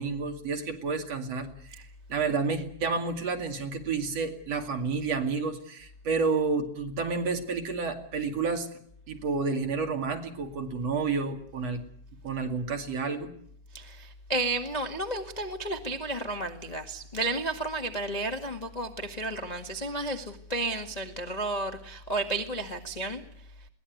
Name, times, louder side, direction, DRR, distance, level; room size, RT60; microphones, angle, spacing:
voice 1, 0.0-1.8 2.1-8.7 9.1-11.8 12.2-13.3, right 4 dB, 55° right, 5 dB, 3.3 m, -30 dB
voice 2, 13.7-23.2, right 2 dB, 20° left, 5 dB, 1.1 m, -32 dB
22.0 x 18.5 x 9.3 m, 0.67 s
omnidirectional pair, 3.5 m